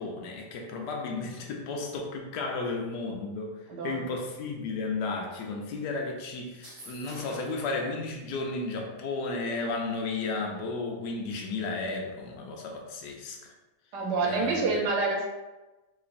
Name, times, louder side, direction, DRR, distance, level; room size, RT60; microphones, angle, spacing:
voice 1, 0.0-3.6 3.8-13.4 14.2-14.8, left 3 dB, 85° left, 0 dB, 1.2 m, -33 dB
voice 2, 3.7-4.0 13.9-15.3, right 3 dB, 85° right, -1 dB, 1.4 m, -27 dB
sound 1, 6.5-7.7, right 1 dB, 20° right, 1.0 m, -47 dB
4.1 x 3.1 x 2.5 m, 1.1 s
omnidirectional pair, 1.8 m